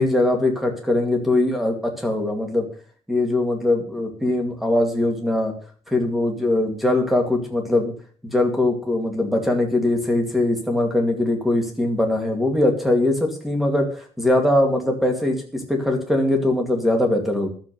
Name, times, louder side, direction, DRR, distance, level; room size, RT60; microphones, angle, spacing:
voice 1, 0.0-2.7 3.1-5.5 5.9-7.9 8.2-17.5, left 1 dB, ahead, 3 dB, 2.3 m, -21 dB
12.5 x 7.3 x 6.8 m, 0.44 s
cardioid pair, 180°, 11 cm